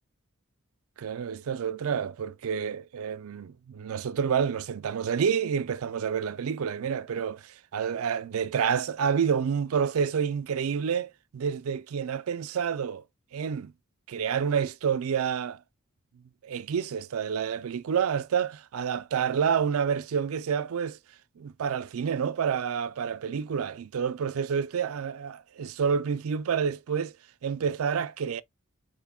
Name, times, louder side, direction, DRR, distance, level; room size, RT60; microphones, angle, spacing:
voice 1, 1.0-13.0 13.3-13.7 14.1-15.6 16.4-21.0 21.4-27.2 27.4-28.4, right 7 dB, 80° right, 0.4 m, -29 dB
4.9 x 2.1 x 3.5 m
head